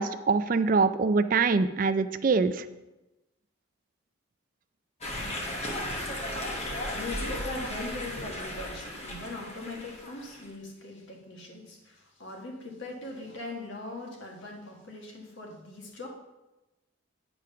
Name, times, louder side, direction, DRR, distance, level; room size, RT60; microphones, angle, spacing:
voice 1, 0.0-2.7, right 4 dB, 40° right, 11 dB, 0.4 m, -24 dB
sound 1, 5.0-10.4, left 1 dB, 30° left, 1.2 m, -35 dB
voice 2, 6.9-16.1, left 2 dB, 65° left, 0 dB, 1.8 m, -40 dB
9.2 x 4.9 x 5.7 m, 1.0 s
head